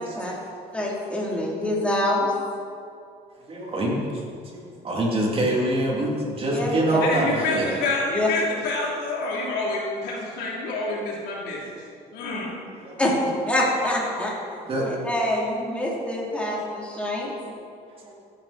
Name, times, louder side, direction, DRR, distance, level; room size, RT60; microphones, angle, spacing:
voice 1, 0.1-0.4 3.5-4.2 4.4-7.7 12.8-13.0 14.6-14.9 18.0-18.1, right 1 dB, 35° right, -3 dB, 3.2 m, -25 dB
voice 2, 0.7-2.3 6.5-6.7 8.1-8.3 13.0-13.1 13.5-14.3 14.8-17.3, left 1 dB, 5° left, -5 dB, 3.7 m, -25 dB
voice 3, 7.0-11.6 12.1-12.5, left 3 dB, 85° left, -4 dB, 3.8 m, -27 dB
15.0 x 11.0 x 4.5 m, 2.4 s
cardioid pair, 110°, 17 cm